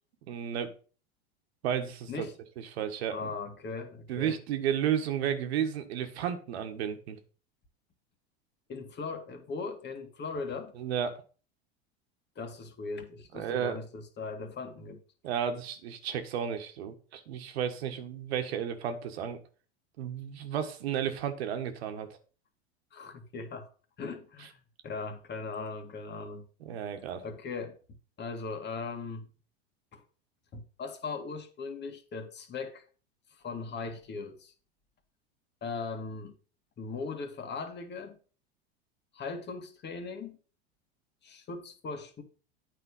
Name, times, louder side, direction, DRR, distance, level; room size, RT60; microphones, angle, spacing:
voice 1, 0.3-0.7 1.6-2.3 2.6-3.3 4.1-7.2 10.8-11.2 13.3-13.8 15.2-19.4 20.0-22.1 26.6-27.2, right 9 dB, 75° right, 1.5 m, -33 dB
voice 2, 3.1-4.4 8.7-10.7 12.4-15.0 22.9-23.7 24.0-24.6 24.8-26.5 27.2-27.8 28.2-29.3 29.9-30.0 30.5-32.8 33.3-34.5 35.6-36.4 36.8-38.2 39.1-40.4 41.2-42.2, left 4 dB, 35° left, 1.9 m, -39 dB
8.8 x 5.0 x 5.5 m
hypercardioid pair, 100°, 32 cm